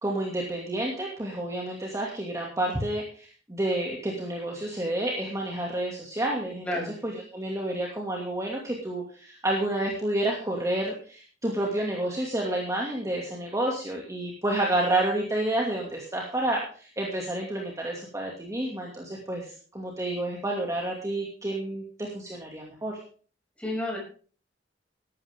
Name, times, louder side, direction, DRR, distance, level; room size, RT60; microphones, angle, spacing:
voice 1, 0.0-23.0, right 1 dB, 20° right, -2 dB, 2.4 m, -30 dB
voice 2, 6.6-6.9 23.6-24.0, left 1 dB, 5° left, -2 dB, 6.5 m, -30 dB
15.0 x 12.0 x 3.7 m, 0.41 s
head